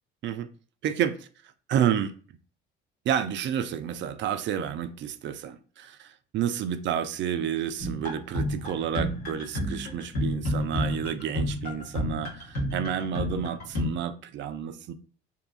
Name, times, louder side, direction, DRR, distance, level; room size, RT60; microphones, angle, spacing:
voice 1, 0.8-1.3 1.7-2.1 3.0-14.9, right 9 dB, 40° right, 0.4 m, -30 dB
Slow cloud Synth music, 7.8-13.9, left 1 dB, 85° left, 1.1 m, -30 dB
2.9 x 2.2 x 2.4 m
hypercardioid pair, 60°, 30 cm